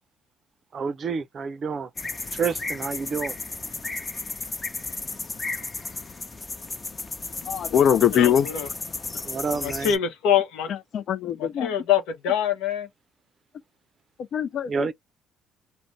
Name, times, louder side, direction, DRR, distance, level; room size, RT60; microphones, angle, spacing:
voice 1, 0.7-1.9 2.3-3.3 9.2-9.9 14.7-14.9, right 5 dB, 50° right, 0.5 m, -29 dB
sound 1, 2.0-10.0, left 3 dB, 30° left, 0.7 m, -34 dB
voice 2, 7.5-8.5 10.9-11.7 14.3-14.9, left 9 dB, 60° left, 0.4 m, -22 dB
voice 3, 8.1-8.7 9.6-10.7 11.4-12.9, left 9 dB, 80° left, 0.8 m, -24 dB
2.5 x 2.1 x 3.1 m
supercardioid pair, 60°, 0 cm